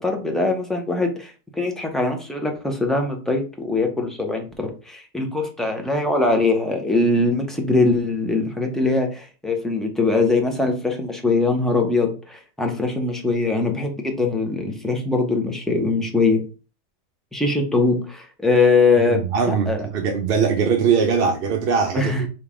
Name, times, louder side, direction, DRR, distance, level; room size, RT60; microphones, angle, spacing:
voice 1, 0.0-16.5 17.3-19.2 19.5-19.8 21.9-22.2, left 3 dB, ahead, 0.5 m, -22 dB
voice 2, 19.0-22.3, right 6 dB, 55° right, 0.7 m, -21 dB
3.7 x 2.8 x 4.7 m
omnidirectional pair, 1.4 m